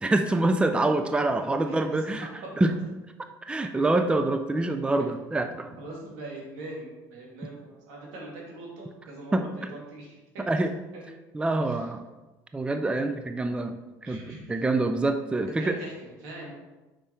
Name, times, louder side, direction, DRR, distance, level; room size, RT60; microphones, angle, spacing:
voice 1, 0.0-2.3 2.6-2.7 3.5-5.7 9.3-9.4 10.4-10.7 11.3-12.1 12.5-13.8 14.0-14.2 14.5-15.8, right 2 dB, 10° right, 7 dB, 0.5 m, -25 dB
voice 2, 1.4-2.3 5.7-10.4 10.9-11.1 11.6-11.8 14.0-14.5 15.6-15.9 16.2-16.5, right 2 dB, 85° right, -2 dB, 2.1 m, -42 dB
5.4 x 5.2 x 4.3 m, 1.1 s
supercardioid pair, 90°, 9 cm